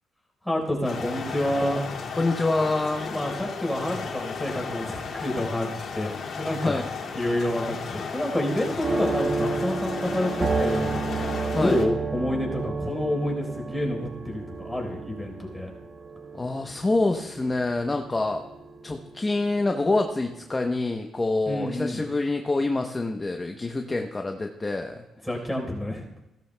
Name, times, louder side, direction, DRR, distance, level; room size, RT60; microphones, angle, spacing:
voice 1, 0.4-2.0 3.1-6.8 7.1-11.0 11.5-15.7 21.5-22.1 25.2-26.0, left 1 dB, 5° left, 0 dB, 3.9 m, -28 dB
sound 1, 0.8-11.8, left 5 dB, 65° left, 2.2 m, -34 dB
voice 2, 2.2-3.1 6.6-6.8 11.5-11.8 16.3-18.4 18.8-25.0, left 2 dB, 20° left, 4 dB, 0.8 m, -26 dB
sound 2, 8.8-19.3 19.7-19.8 20.3-20.5, right 4 dB, 35° right, 1.4 m, -31 dB
16.5 x 13.0 x 2.2 m, 0.97 s
cardioid pair, 90°, 0 cm